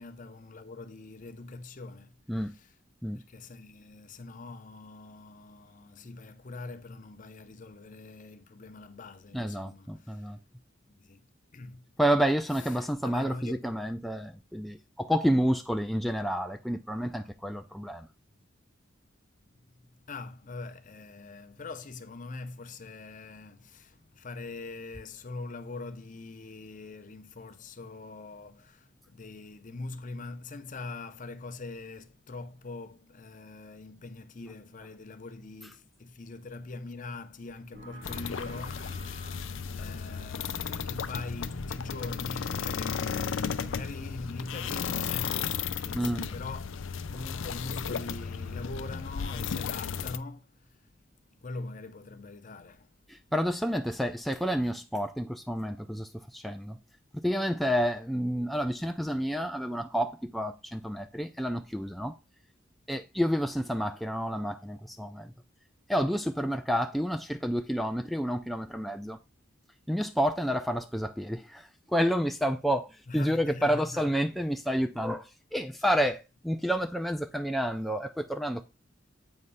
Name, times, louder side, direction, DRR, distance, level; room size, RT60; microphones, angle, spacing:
voice 1, 0.0-2.8 3.2-10.4 10.9-11.3 11.5-11.9 12.6-13.7 19.7-50.8 51.4-52.9 73.1-74.1 75.7-75.8, left 3 dB, 40° left, 0.7 m, -43 dB
voice 2, 9.3-10.4 12.0-18.1 45.9-46.3 53.1-56.8 57.1-62.1 62.9-65.3 65.9-69.2 69.9-78.6, equal, ahead, 0.4 m, -29 dB
sound 1, 37.7-45.0, right 2 dB, 80° right, 3.7 m, -54 dB
sound 2, 38.0-50.2, left 6 dB, 80° left, 0.5 m, -34 dB
7.9 x 3.2 x 5.4 m
head